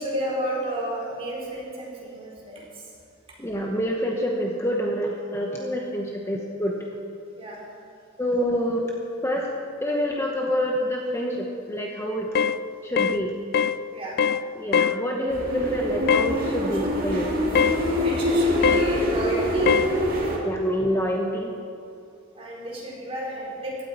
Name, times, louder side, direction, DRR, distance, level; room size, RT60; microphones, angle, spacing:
voice 1, 0.0-2.9 7.4-7.6 13.9-14.2 16.7-16.8 17.9-19.8 20.5-20.7 22.4-23.8, right 1 dB, 30° right, -5 dB, 4.2 m, -32 dB
voice 2, 3.4-6.8 8.2-8.9 9.2-9.5 9.8-12.3 12.8-13.3 14.6-17.3 20.4-21.5, equal, 15° left, -1 dB, 1.0 m, -27 dB
sound 1, 12.4-12.6 13.0-13.2 13.5-13.8 14.2-14.4 14.7-15.0 16.1-16.3 17.6-17.8 18.6-18.9 19.7-19.9, left 7 dB, 50° left, 0.4 m, -21 dB
sound 2, 15.3-20.4, equal, 45° right, 2.5 m, -25 dB
16.5 x 13.0 x 4.4 m, 2.5 s
head